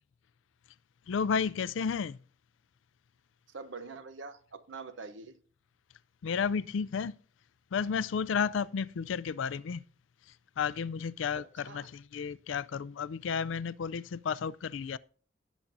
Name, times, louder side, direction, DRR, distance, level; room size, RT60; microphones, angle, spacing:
voice 1, 1.1-2.2 6.2-7.2 7.7-9.8 10.6-15.0, left 6 dB, 80° left, 0.4 m, -32 dB
voice 2, 3.5-5.4 11.3-11.9, right 4 dB, 75° right, 0.9 m, -45 dB
18.0 x 7.2 x 2.6 m
head